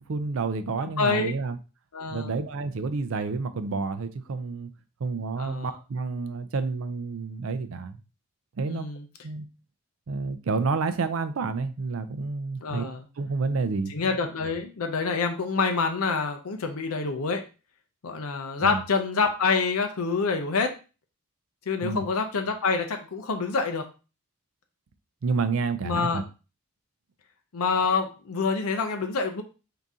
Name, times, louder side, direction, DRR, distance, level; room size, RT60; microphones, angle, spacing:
voice 1, 0.0-1.6 2.1-4.7 5.0-8.0 8.6-8.9 9.2-9.5 10.1-12.9 13.2-13.9 18.6-18.8 21.8-22.0 25.2-26.2, right 4 dB, 70° right, 10 dB, 0.4 m, -29 dB
voice 2, 0.8-1.3 1.9-2.3 5.4-5.7 8.7-9.0 12.6-13.0 13.9-17.4 18.0-20.7 21.7-23.9 25.8-26.2 27.5-29.4, left 4 dB, 85° left, 5 dB, 0.6 m, -27 dB
3.8 x 2.7 x 3.6 m, 0.32 s
head